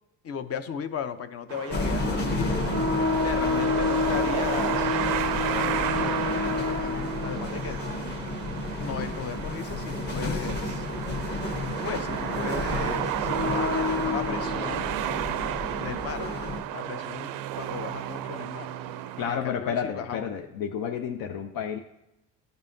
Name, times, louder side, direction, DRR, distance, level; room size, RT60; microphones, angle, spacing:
voice 1, 0.2-2.7 3.2-4.9 5.5-7.8 8.8-10.9 11.8-15.0 15.8-16.3 16.7-18.7 19.3-20.3, left 7 dB, 45° left, 10 dB, 0.6 m, -36 dB
sound 1, 1.5-19.4, right 12 dB, 90° right, 0.5 m, -33 dB
sound 2, 1.7-16.6, left 3 dB, 30° left, 1.1 m, -29 dB
voice 2, 19.2-21.8, left 7 dB, 85° left, 5 dB, 0.7 m, -31 dB
13.0 x 5.4 x 2.7 m, 0.89 s
cardioid pair, 130°, 33 cm